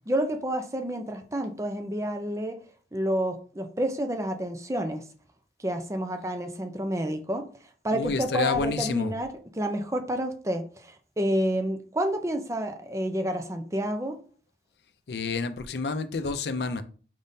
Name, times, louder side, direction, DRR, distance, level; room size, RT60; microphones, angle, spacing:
voice 1, 0.1-2.6 2.9-5.1 5.6-7.4 7.8-14.2, right 1 dB, 15° right, 0.5 m, -29 dB
voice 2, 7.9-9.1 15.1-16.8, left 4 dB, 70° left, 0.5 m, -29 dB
5.1 x 3.6 x 2.7 m
head